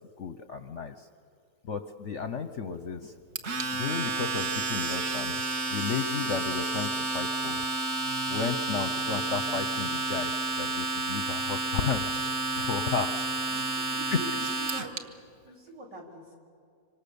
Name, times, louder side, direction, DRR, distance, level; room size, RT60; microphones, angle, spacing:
voice 1, 0.2-1.1 1.6-3.1 3.7-5.4 5.7-7.6 8.3-12.1 12.5-13.1 13.4-13.6, left 6 dB, 55° left, 9 dB, 0.9 m, -33 dB
Domestic sounds home sounds, 3.4-15.0, right 2 dB, 45° right, 1.3 m, -30 dB
voice 2, 13.5-15.1 15.4-16.4, right 2 dB, 75° right, -2 dB, 4.3 m, -44 dB
25.5 x 25.5 x 7.0 m, 2.4 s
omnidirectional pair, 1.9 m